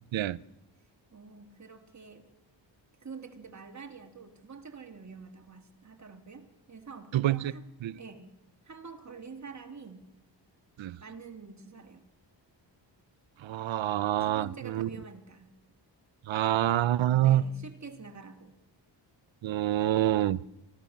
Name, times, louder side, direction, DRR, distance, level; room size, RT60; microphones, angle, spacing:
voice 1, 1.1-2.3 3.0-7.6 8.0-8.3 8.6-10.1 11.0-12.0 14.2-15.5 17.2-18.6, right 5 dB, 35° right, 2.9 m, -47 dB
voice 2, 7.1-7.5 7.8-8.0 10.8-11.0 13.4-14.9 16.3-17.4 19.4-20.4, right 13 dB, 80° right, 0.8 m, -26 dB
25.0 x 16.5 x 7.2 m
wide cardioid pair, 110°, 46 cm